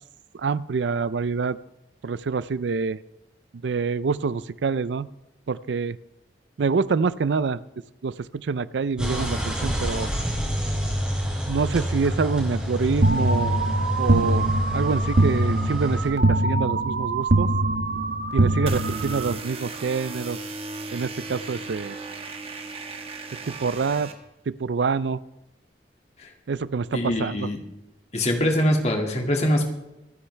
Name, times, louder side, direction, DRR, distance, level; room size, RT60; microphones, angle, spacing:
voice 1, 0.3-1.6 2.0-3.0 3.6-5.1 5.5-6.0 6.6-7.6 8.0-10.1 11.5-13.7 14.0-14.5 14.7-17.5 18.3-20.4 20.9-22.0 23.5-24.1 24.5-25.2 26.5-27.5, right 5 dB, 75° right, 17 dB, 0.4 m, -26 dB
sound 1, 9.0-16.1, equal, 5° right, 4.3 m, -27 dB
sound 2, 13.0-19.4, right 2 dB, 60° right, 0.9 m, -23 dB
sound 3, 18.7-24.1, right 3 dB, 30° right, 1.3 m, -36 dB
voice 2, 26.9-27.6 28.1-29.6, equal, 35° left, 2 dB, 2.0 m, -23 dB
25.0 x 10.0 x 3.3 m, 0.93 s
head